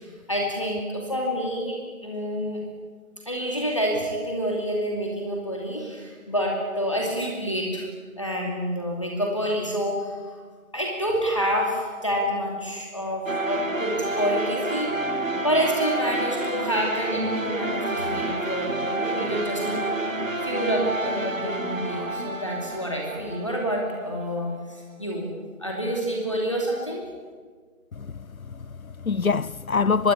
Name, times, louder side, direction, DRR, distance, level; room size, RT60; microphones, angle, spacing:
voice 1, 0.0-1.8 2.0-2.6 3.3-7.9 8.2-10.2 10.7-14.9 15.4-19.9 20.4-25.3 25.6-27.0, equal, 20° left, 2.6 m, -28 dB
sound 1, 13.3-24.2, right 2 dB, 65° right, 2.5 m, -29 dB
voice 2, 27.9-30.1, left 5 dB, 70° left, 0.7 m, -25 dB
24.5 x 21.0 x 9.7 m
figure-of-eight pair, 175°, 43 cm